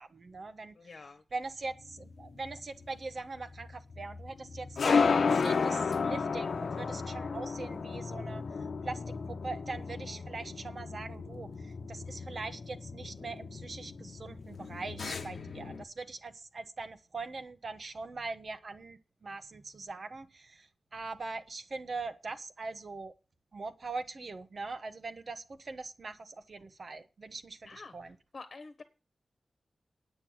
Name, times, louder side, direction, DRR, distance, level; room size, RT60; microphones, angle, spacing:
voice 1, 0.0-0.7 1.3-8.4 8.8-23.1 23.5-28.2, right 3 dB, 50° right, 1.2 m, -42 dB
voice 2, 0.7-1.2 15.1-15.2 27.6-28.0 28.3-28.8, left 4 dB, 50° left, 1.4 m, -47 dB
sound 1, 1.8-15.8, left 5 dB, 70° left, 1.0 m, -33 dB
9.2 x 8.8 x 6.3 m
wide cardioid pair, 150°, 0 cm